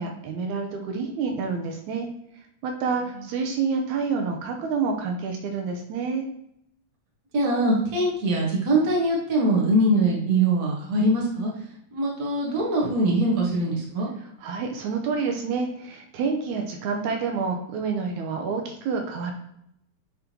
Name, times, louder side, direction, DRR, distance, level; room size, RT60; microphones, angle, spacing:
voice 1, 0.0-2.1 2.6-6.3 14.4-19.3, right 5 dB, 80° right, 3 dB, 2.0 m, -28 dB
voice 2, 7.3-11.5 11.9-14.1, right 1 dB, 40° right, -3 dB, 1.5 m, -22 dB
8.8 x 3.7 x 3.0 m, 0.76 s
omnidirectional pair, 3.5 m